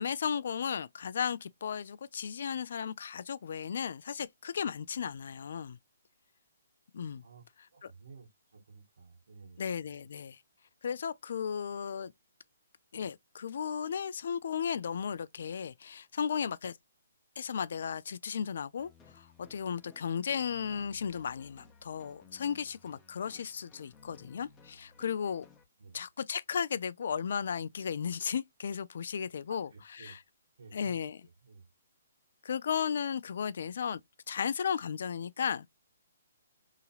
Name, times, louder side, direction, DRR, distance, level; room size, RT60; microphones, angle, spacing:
voice 1, 0.0-5.8 6.9-7.2 7.8-7.9 9.6-10.4 10.8-12.1 12.9-16.8 17.4-25.5 25.9-30.2 30.7-31.2 32.4-34.0 34.3-35.7, left 7 dB, 60° left, 0.3 m, -35 dB
voice 2, 7.7-10.0 25.8-26.0 29.5-30.2 30.6-31.0 31.4-31.7, right 4 dB, 65° right, 1.2 m, -54 dB
sound 1, 18.8-25.6, left 5 dB, 15° left, 0.7 m, -59 dB
2.9 x 2.8 x 2.3 m
hypercardioid pair, 140°, 0 cm